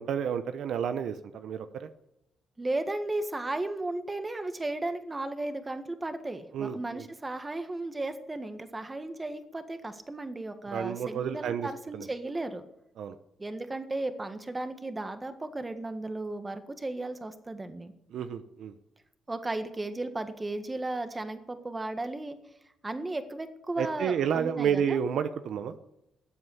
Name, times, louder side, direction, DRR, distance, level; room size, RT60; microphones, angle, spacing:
voice 1, 0.0-1.9 6.5-7.0 10.7-11.7 11.9-12.1 13.0-13.2 18.1-18.7 23.8-25.8, right 8 dB, 70° right, 10 dB, 0.8 m, -30 dB
voice 2, 2.6-12.7 13.4-17.9 19.3-22.4 22.8-25.0, right 2 dB, 20° right, 8 dB, 1.7 m, -35 dB
14.0 x 7.8 x 9.4 m, 0.84 s
cardioid pair, 90°, 0 cm